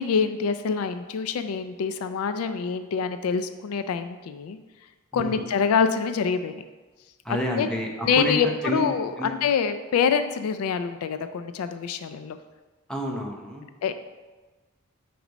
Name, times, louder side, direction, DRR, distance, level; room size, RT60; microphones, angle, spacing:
voice 1, 0.0-4.6 5.1-6.6 7.3-7.7 8.0-12.4 13.8-13.9, left 6 dB, 85° left, 10 dB, 0.3 m, -26 dB
voice 2, 5.1-5.4 7.2-9.3 12.9-13.6, left 1 dB, 5° left, -1 dB, 0.7 m, -29 dB
5.0 x 4.7 x 4.0 m, 1.2 s
head